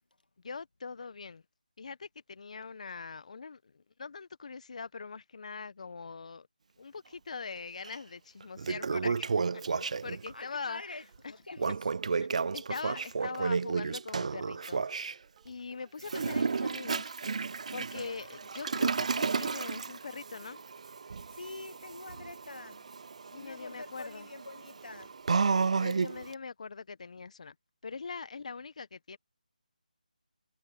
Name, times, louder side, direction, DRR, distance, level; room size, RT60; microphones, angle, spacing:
voice 1, 0.4-1.4 1.8-6.5 6.8-11.3 11.7-11.8 12.2-12.3 12.5-15.0 15.4-17.3 17.7-20.6 23.3-24.3 25.7-27.5 27.8-29.2, left 5 dB, 50° left, 1.1 m, -42 dB
Toilet flush, 7.8-8.0 8.4-10.3 11.6-15.1 16.0-26.3, right 5 dB, 50° right, 0.4 m, -32 dB
sound 1, 9.5-17.2, right 19 dB, 20° right, 4.8 m, -69 dB
voice 2, 10.3-11.8 21.3-22.9 23.3-25.2, left 2 dB, 75° left, 1.8 m, -46 dB
figure-of-eight pair, 160°, 5 cm